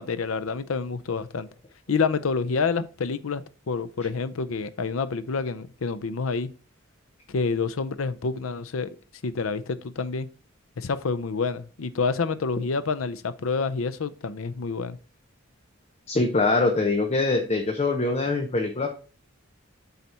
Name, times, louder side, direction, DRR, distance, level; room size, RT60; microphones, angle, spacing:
voice 1, 0.0-1.5 1.9-3.4 3.7-6.5 7.3-8.9 9.2-10.3 10.8-15.0, left 4 dB, 90° left, 0.6 m, -28 dB
voice 2, 16.1-18.9, left 3 dB, 30° left, 0.8 m, -23 dB
7.9 x 4.2 x 4.3 m
head